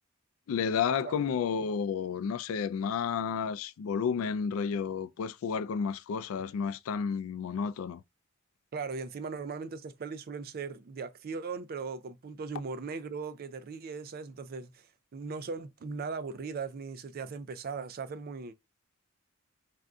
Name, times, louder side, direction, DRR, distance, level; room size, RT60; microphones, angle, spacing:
voice 1, 0.5-8.0, left 6 dB, 85° left, 0.3 m, -31 dB
voice 2, 8.7-14.8 15.1-18.5, right 4 dB, 45° right, 0.4 m, -38 dB
2.6 x 2.2 x 3.5 m
head